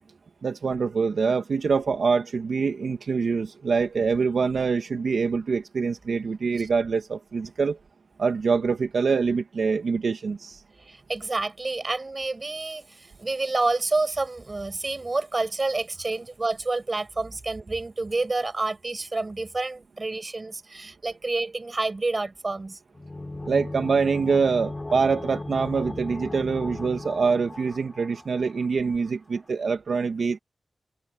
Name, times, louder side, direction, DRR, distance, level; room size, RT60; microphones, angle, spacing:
voice 1, 0.4-7.8 8.2-10.6 23.4-30.4, right 5 dB, 70° right, 1.7 m, -25 dB
voice 2, 10.8-22.8, right 3 dB, 35° right, 5.8 m, -29 dB
sound 1, 22.9-28.6 28.9-29.0, left 2 dB, 25° left, 3.1 m, -36 dB
wide cardioid pair, 105°, 0 cm